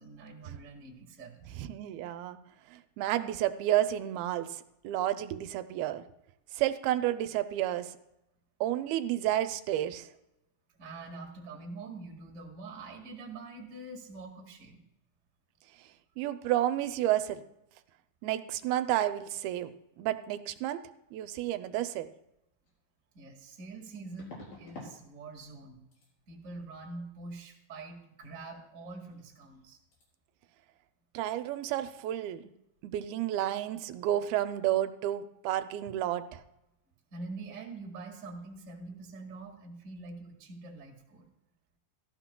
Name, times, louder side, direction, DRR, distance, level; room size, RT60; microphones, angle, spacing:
voice 1, 0.0-1.5 10.8-14.8 23.1-25.8 26.3-29.8 37.1-41.3, right 3 dB, 35° right, 0 dB, 1.3 m, -45 dB
voice 2, 1.6-2.4 2.7-4.5 4.8-6.0 6.5-7.9 8.6-10.1 16.2-17.4 18.2-19.7 20.0-20.8 21.1-22.1 31.1-32.5 32.8-36.4, right 13 dB, 85° right, 10 dB, 2.5 m, -31 dB
sound 1, 22.6-22.7 24.2-25.0 25.3-25.6 25.9-26.1 29.0-29.2 29.4-29.6 29.9-30.0, left 2 dB, 70° left, 5.5 m, -48 dB
18.0 x 14.0 x 2.2 m, 0.85 s
omnidirectional pair, 4.3 m